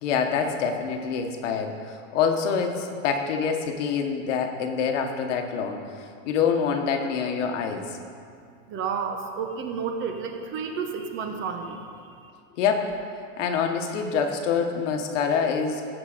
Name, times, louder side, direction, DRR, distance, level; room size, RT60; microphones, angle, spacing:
voice 1, 0.0-8.0 12.6-13.0 13.4-15.9, left 6 dB, 65° left, 5 dB, 1.3 m, -26 dB
voice 2, 8.7-11.8, right 6 dB, 30° right, 4 dB, 0.9 m, -31 dB
15.5 x 5.1 x 5.1 m, 2.3 s
supercardioid pair, 140°, 40 cm